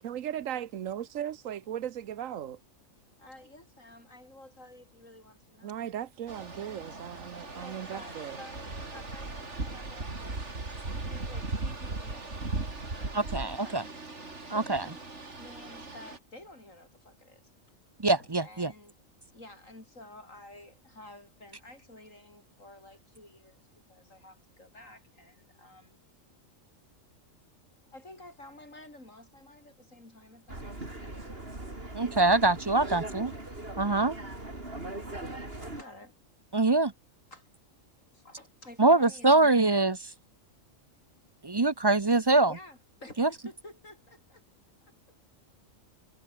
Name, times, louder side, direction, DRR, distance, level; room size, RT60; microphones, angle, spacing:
voice 1, 0.0-2.6 5.6-8.4, right 10 dB, 90° right, 1.2 m, -37 dB
voice 2, 3.2-5.9 7.5-10.4 10.9-12.6 12.8-15.1 15.4-17.5 18.2-18.9 19.3-26.0 27.9-31.5 32.8-32.9 33.3-33.9 35.3-36.1 37.3-37.7 38.1-39.5 42.5-44.4 44.8-44.9, left 1 dB, 80° left, 8.3 m, -52 dB
sound 1, 6.3-16.2, right 3 dB, 60° right, 3.8 m, -38 dB
voice 3, 13.1-13.8 14.5-14.8 18.0-18.7 31.9-33.3 33.8-34.1 36.5-36.9 38.8-40.1 41.4-42.5 43.2-43.3, right 2 dB, 25° right, 0.6 m, -24 dB
sound 2, 30.5-35.8, right 2 dB, 45° right, 5.3 m, -40 dB
omnidirectional pair, 1.3 m